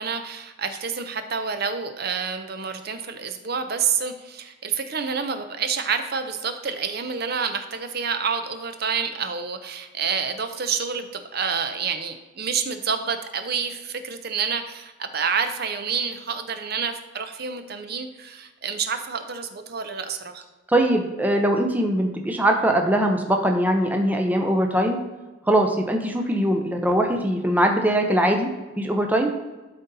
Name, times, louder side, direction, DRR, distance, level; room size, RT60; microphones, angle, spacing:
voice 1, 0.0-20.4, right 6 dB, 50° right, 8 dB, 0.6 m, -28 dB
voice 2, 20.7-25.0 25.5-28.5 28.8-29.3, right 1 dB, 10° right, 3 dB, 0.6 m, -21 dB
12.0 x 4.0 x 4.0 m, 1.2 s
head